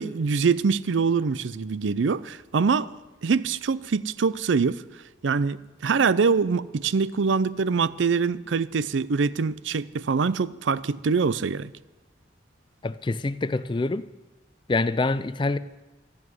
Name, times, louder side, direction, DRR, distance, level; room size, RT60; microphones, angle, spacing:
voice 1, 0.0-2.9 3.2-4.8 5.2-11.7, right 5 dB, 85° right, 0.5 m, -24 dB
voice 2, 12.8-14.1 14.7-15.6, left 3 dB, 25° left, 0.4 m, -25 dB
13.5 x 7.8 x 9.6 m
head